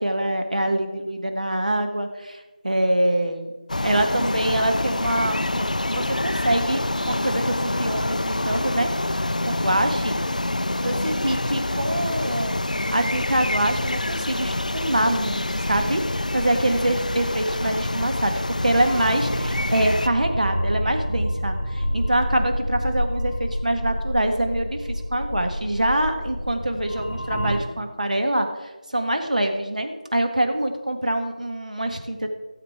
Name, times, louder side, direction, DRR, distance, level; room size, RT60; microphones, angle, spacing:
voice 1, 0.0-3.5 3.8-10.2 10.8-16.0 16.3-32.3, right 1 dB, 60° right, 5 dB, 1.5 m, -25 dB
sound 1, 3.7-20.1, left 2 dB, 60° left, 0.4 m, -26 dB
sound 2, 16.3-27.6, equal, 10° left, 2.2 m, -30 dB
16.0 x 7.6 x 4.6 m, 1.2 s
figure-of-eight pair, 170°, 5 cm